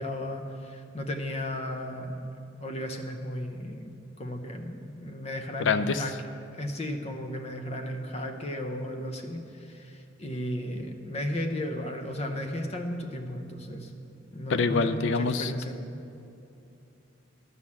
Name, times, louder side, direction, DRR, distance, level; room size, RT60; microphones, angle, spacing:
voice 1, 0.0-2.3 2.6-6.1 6.6-13.9 14.3-15.8, left 1 dB, 30° left, 5 dB, 0.8 m, -34 dB
voice 2, 5.6-6.0 14.5-15.5, left 4 dB, 65° left, 12 dB, 0.4 m, -25 dB
11.0 x 6.3 x 7.2 m, 2.7 s
head